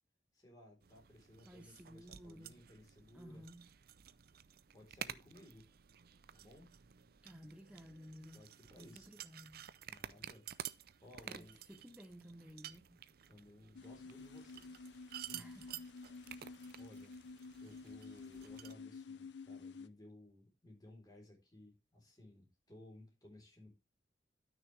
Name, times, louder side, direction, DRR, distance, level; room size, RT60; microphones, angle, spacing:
voice 1, 0.3-3.4 4.7-5.6 6.3-6.7 8.3-9.1 9.9-10.4 10.7-11.6 13.3-14.7 15.2-15.5 16.8-17.1 17.6-23.7, left 1 dB, 20° left, 3.7 m, -59 dB
sound 1, 0.8-18.7, right 10 dB, 55° right, 0.5 m, -52 dB
voice 2, 1.4-2.5 3.1-3.7 7.2-8.4 8.8-9.6 11.3-13.0 15.3-15.9, equal, 5° right, 0.8 m, -55 dB
sound 2, 13.8-19.9, left 4 dB, 65° left, 0.6 m, -51 dB
12.5 x 6.5 x 3.3 m
head